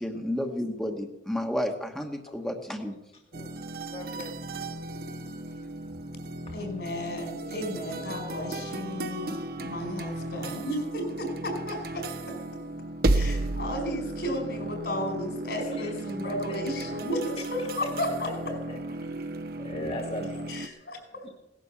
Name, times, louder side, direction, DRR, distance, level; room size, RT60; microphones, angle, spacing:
voice 1, 0.0-2.9, left 1 dB, 5° left, 2 dB, 1.2 m, -31 dB
sound 1, 3.3-20.7, right 2 dB, 55° right, 0.9 m, -34 dB
voice 2, 3.9-4.3 7.1-7.6 15.8-15.9 16.2-16.6 19.6-20.5 21.2-21.3, equal, 35° left, 3 dB, 1.9 m, -38 dB
voice 3, 6.5-12.3 13.1-18.6 20.5-21.3, equal, 65° left, 4 dB, 4.9 m, -34 dB
17.5 x 11.0 x 7.1 m, 0.92 s
head